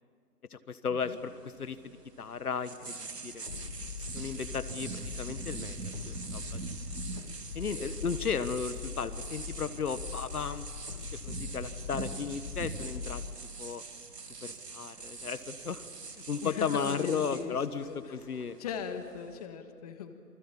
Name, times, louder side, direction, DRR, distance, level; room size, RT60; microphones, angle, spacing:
voice 1, 0.5-3.0 3.2-3.7 4.1-6.4 7.5-10.7 11.2-13.2 13.6-13.8 14.4-15.8 16.3-18.6, left 6 dB, 70° left, 12 dB, 1.4 m, -35 dB
sound 1, 1.0-19.5, right 4 dB, 85° right, 2.7 m, -43 dB
sound 2, 3.5-13.3, left 6 dB, 40° left, 1.2 m, -42 dB
voice 2, 16.4-18.0 18.6-20.1, left 7 dB, 25° left, 8 dB, 1.5 m, -39 dB
28.0 x 20.5 x 8.7 m, 2.3 s
figure-of-eight pair, 150°, 47 cm